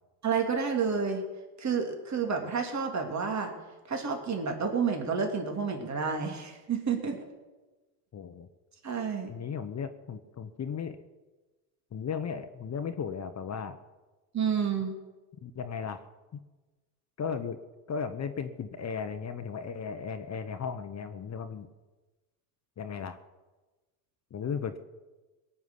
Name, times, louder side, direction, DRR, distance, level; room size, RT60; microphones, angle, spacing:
voice 1, 0.2-1.2 1.6-3.5 3.9-7.2 8.8-9.3 14.3-15.0, right 6 dB, 35° right, 3 dB, 3.1 m, -30 dB
voice 2, 8.1-8.5 9.3-11.0 11.9-13.8 15.4-16.1 16.3-16.4 17.2-17.6 17.9-21.7 22.8-23.2 24.3-24.8, left 6 dB, 35° left, 9 dB, 1.1 m, -36 dB
18.0 x 7.3 x 9.8 m, 1.2 s
supercardioid pair, 80°, 46 cm